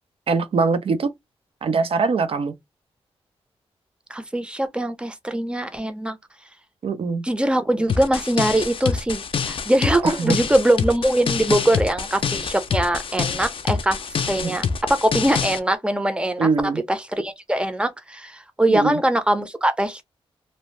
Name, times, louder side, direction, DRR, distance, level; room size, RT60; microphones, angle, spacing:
voice 1, 0.3-1.1 1.6-2.5 6.8-7.2 10.0-10.4 14.4-14.6 16.4-16.8 18.7-19.0, right 4 dB, 65° right, 0.6 m, -22 dB
voice 2, 4.1-6.2 7.2-14.0 14.3-14.6 14.9-16.5 16.9-20.0, right 1 dB, 10° right, 0.6 m, -22 dB
sound 1, 7.9-15.6, left 6 dB, 55° left, 0.4 m, -26 dB
2.7 x 2.0 x 3.1 m
cardioid pair, 85°, 11 cm